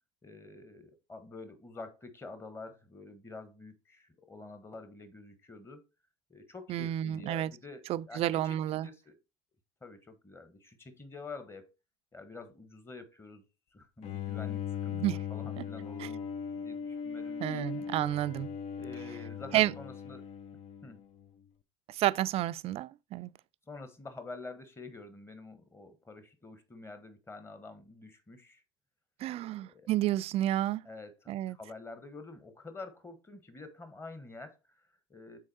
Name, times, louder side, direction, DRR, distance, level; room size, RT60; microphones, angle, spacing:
voice 1, 0.2-5.8 6.3-9.2 9.8-11.7 12.1-13.4 13.7-15.0 15.3-16.3 16.5-17.7 18.8-20.3 20.8-21.0 23.7-28.6 29.3-29.9 30.8-35.4, left 3 dB, 15° left, 1.4 m, -48 dB
voice 2, 6.7-7.5 7.9-8.9 14.9-15.2 15.6-15.7 16.0-16.1 17.4-18.5 19.5-19.7 21.9-23.3 29.2-30.8 31.3-31.6, right 13 dB, 45° right, 0.4 m, -30 dB
Bowed string instrument, 14.0-21.3, left 7 dB, 50° left, 0.6 m, -39 dB
6.4 x 4.1 x 4.1 m
hypercardioid pair, 80°, 14 cm